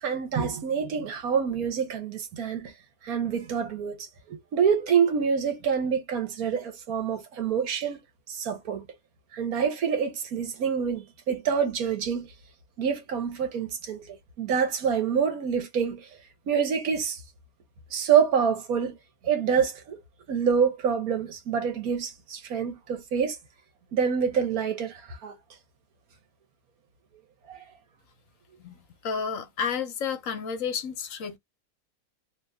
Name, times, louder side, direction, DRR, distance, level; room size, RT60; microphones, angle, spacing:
voice 1, 0.0-2.7 3.0-8.0 8.3-8.8 9.3-12.3 12.8-14.1 14.4-16.0 16.5-17.2 17.9-19.0 19.2-20.0 20.3-23.4 23.9-25.3 27.5-27.6, right 7 dB, 80° right, 1.5 m, -26 dB
voice 2, 28.6-31.4, left 6 dB, 65° left, 1.1 m, -31 dB
3.0 x 2.9 x 3.5 m
omnidirectional pair, 1.5 m